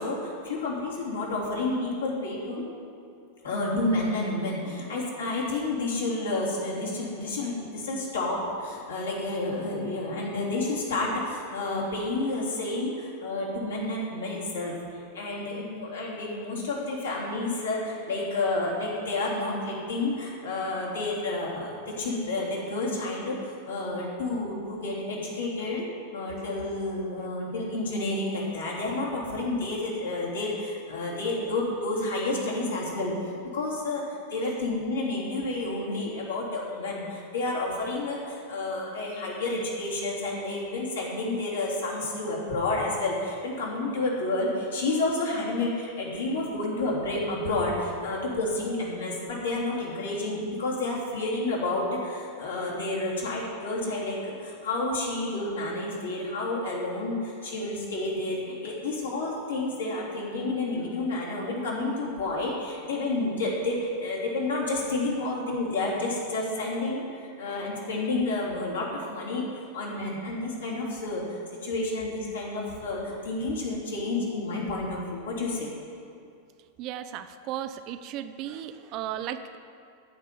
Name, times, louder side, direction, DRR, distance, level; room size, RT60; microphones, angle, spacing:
voice 1, 0.0-2.6 3.4-25.8 26.1-69.4 69.7-75.7, left 2 dB, 65° left, -5 dB, 3.5 m, -30 dB
voice 2, 76.8-79.6, right 10 dB, 40° right, 10 dB, 0.6 m, -36 dB
15.0 x 5.3 x 7.7 m, 2.5 s
figure-of-eight pair, 90°, 0 cm